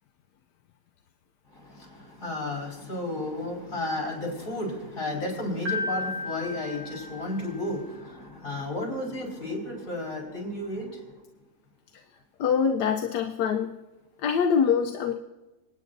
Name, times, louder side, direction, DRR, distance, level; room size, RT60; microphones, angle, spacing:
voice 1, 1.5-11.1, left 1 dB, 55° left, -1 dB, 4.7 m, -33 dB
Piano, 5.7-7.7, left 4 dB, 60° right, 2.3 m, -34 dB
voice 2, 12.4-13.7 14.2-15.1, left 7 dB, 80° left, 4 dB, 1.2 m, -24 dB
27.5 x 9.3 x 2.6 m, 1.1 s
omnidirectional pair, 1.8 m